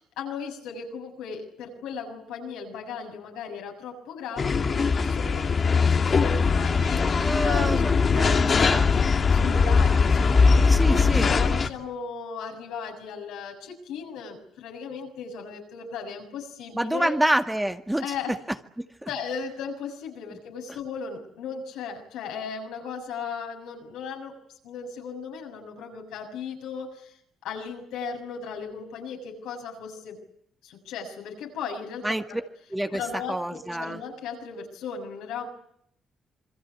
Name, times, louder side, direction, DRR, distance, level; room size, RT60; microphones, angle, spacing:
voice 1, 0.0-17.1 18.0-18.4 19.1-24.4 24.6-27.2 27.4-30.2 30.6-32.4 32.9-35.5, left 6 dB, 85° left, 2 dB, 6.9 m, -36 dB
sound 1, 4.4-11.7, left 5 dB, 45° left, 2.4 m, -21 dB
voice 2, 7.2-8.9 10.7-11.3 16.7-18.1 18.8-19.1 32.0-32.4 32.7-33.0 33.3-34.0, right 1 dB, 10° right, 6 dB, 2.0 m, -28 dB
27.5 x 22.5 x 8.5 m, 0.70 s
supercardioid pair, 60°, 0 cm